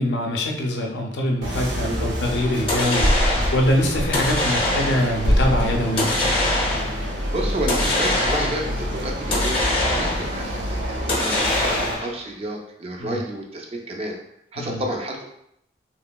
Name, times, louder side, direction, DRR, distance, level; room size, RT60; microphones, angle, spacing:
voice 1, 0.0-6.1 13.0-13.2 14.6-14.8, left 1 dB, 70° left, 1 dB, 0.5 m, -24 dB
sound 1, 1.4-12.0, equal, 70° right, 0.6 m, -28 dB
voice 2, 1.8-2.1 7.0-9.6 9.9-14.2 14.5-15.2, right 1 dB, 30° right, 1 dB, 0.4 m, -30 dB
sound 2, 2.7-3.6 4.1-5.2 6.0-7.0 7.7-8.7 9.3-10.4 11.1-12.2, left 1 dB, 30° left, 0.6 m, -23 dB
sound 3, 2.8-4.9 5.2-5.9, equal, 90° right, 1.0 m, -24 dB
3.0 x 2.6 x 2.2 m, 0.77 s
head